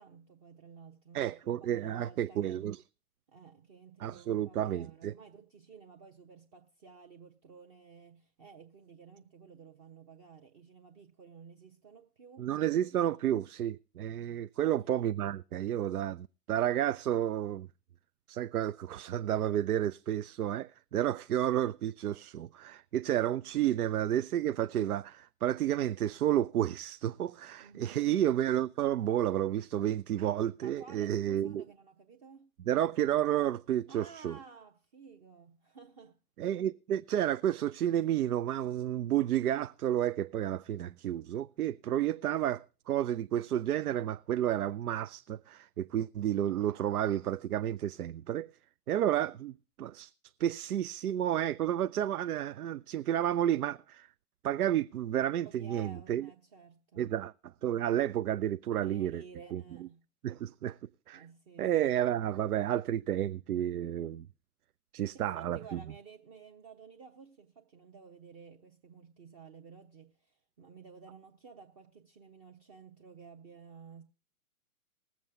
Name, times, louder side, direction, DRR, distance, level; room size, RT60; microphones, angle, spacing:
voice 1, 0.0-2.7 3.3-12.5 14.6-14.9 27.6-28.1 30.6-32.6 33.9-36.2 55.4-57.2 58.8-60.0 61.1-62.2 65.1-74.0, right 5 dB, 25° right, 0.8 m, -53 dB
voice 2, 1.1-2.8 4.0-5.1 12.4-17.7 18.3-31.6 32.7-34.4 36.4-48.5 48.9-50.1 50.4-54.1 54.4-56.3 57.0-57.3 57.6-59.2 59.5-59.6 60.2-60.8 61.1-61.2 61.6-64.3 64.9-65.8, right 11 dB, 75° right, 0.5 m, -31 dB
20.5 x 7.4 x 3.5 m
hypercardioid pair, 130°, 45 cm